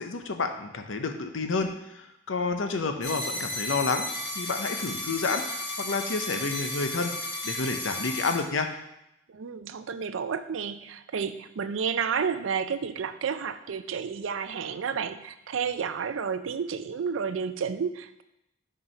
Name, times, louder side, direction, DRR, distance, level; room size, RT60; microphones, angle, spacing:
voice 1, 0.0-4.1 4.4-5.4 5.8-7.1 7.4-8.7, left 4 dB, 85° left, 6 dB, 0.7 m, -29 dB
sound 1, 3.0-8.3, left 1 dB, 70° left, 2.7 m, -34 dB
voice 2, 9.3-18.2, right 6 dB, 90° right, 11 dB, 0.4 m, -31 dB
6.0 x 4.6 x 5.4 m, 0.84 s
head